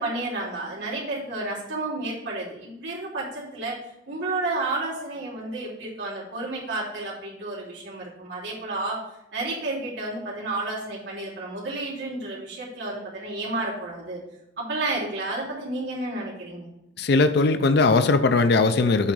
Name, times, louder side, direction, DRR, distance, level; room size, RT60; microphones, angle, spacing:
voice 1, 0.0-3.8 4.1-9.0 9.3-14.2 14.6-16.7, right 2 dB, 70° right, -6 dB, 3.0 m, -31 dB
voice 2, 17.0-19.1, left 3 dB, 60° left, 11 dB, 0.5 m, -19 dB
8.3 x 3.9 x 6.2 m, 0.85 s
head